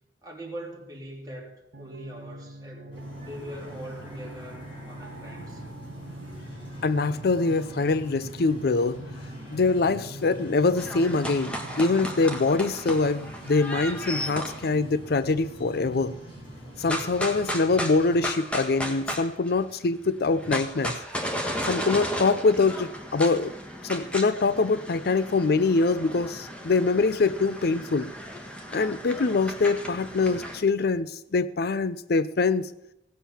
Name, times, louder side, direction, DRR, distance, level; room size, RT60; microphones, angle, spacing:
voice 1, 0.2-5.8, right 1 dB, 20° right, -2 dB, 3.3 m, -42 dB
sound 1, 1.7-12.4, right 1 dB, 75° right, 1.0 m, -44 dB
sound 2, 2.9-18.3, right 1 dB, 30° left, 6.1 m, -43 dB
voice 2, 6.8-9.0 9.5-16.1 16.8-21.0 21.7-23.5 23.8-28.1 28.7-32.7, left 3 dB, 60° left, 15 dB, 0.5 m, -24 dB
sound 3, 10.8-14.7 16.8-19.8 20.0-30.6, equal, 5° left, 1.6 m, -35 dB
17.0 x 7.3 x 7.1 m, 0.82 s
head